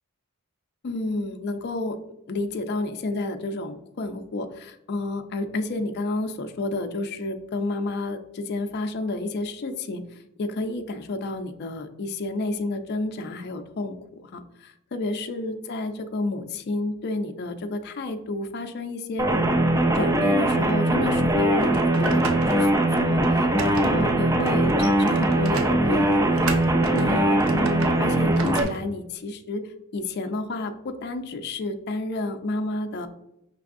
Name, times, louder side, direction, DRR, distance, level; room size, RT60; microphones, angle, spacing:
voice 1, 0.8-2.0 2.3-19.3 19.9-26.4 26.9-33.1, left 2 dB, 50° left, 7 dB, 0.4 m, -30 dB
sound 1, 19.2-28.6, right 1 dB, 15° right, 0.4 m, -21 dB
sound 2, 21.4-28.8, right 2 dB, 70° right, 0.6 m, -34 dB
5.2 x 3.4 x 2.5 m, 0.83 s
head